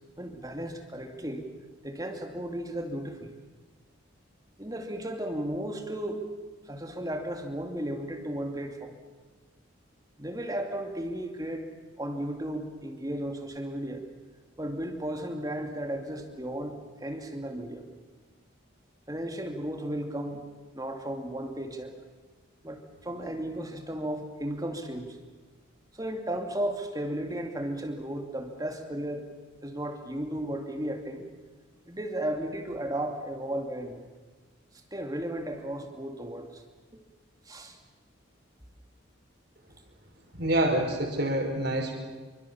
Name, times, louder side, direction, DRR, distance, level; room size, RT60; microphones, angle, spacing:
voice 1, 0.2-1.5 1.8-3.4 4.6-6.3 6.7-9.0 10.2-11.7 12.0-14.0 14.6-17.9 19.1-20.4 20.7-21.9 22.6-25.2 25.9-29.3 29.6-31.3 31.9-34.0 34.9-36.6 37.5-37.8, right 1 dB, 20° right, 4 dB, 2.5 m, -34 dB
voice 2, 40.4-42.0, right 1 dB, 50° right, 2 dB, 5.2 m, -27 dB
27.0 x 25.0 x 7.1 m, 1.4 s
head